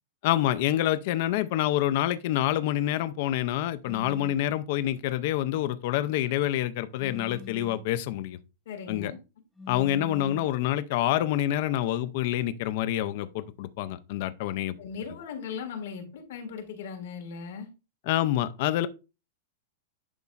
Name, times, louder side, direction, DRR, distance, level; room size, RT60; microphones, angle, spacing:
voice 1, 0.2-8.4 8.9-9.1 9.7-14.8 18.1-18.9, left 13 dB, 40° left, 0.4 m, -27 dB
sound 1, 3.9-4.5 7.0-7.9 9.6-10.6, left 5 dB, 5° left, 0.7 m, -44 dB
voice 2, 8.7-9.2 14.8-17.7, left 6 dB, 60° left, 1.9 m, -38 dB
10.5 x 4.1 x 2.4 m
supercardioid pair, 175°, 0 cm